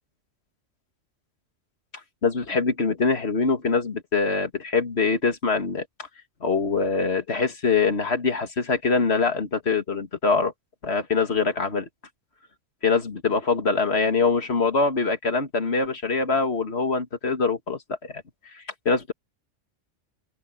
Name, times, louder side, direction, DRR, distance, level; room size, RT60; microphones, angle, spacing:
voice 1, 2.2-6.1 6.4-10.5 10.8-11.9 12.8-19.1, left 4 dB, 55° left, 2.2 m, -24 dB
open air
omnidirectional pair, 1.3 m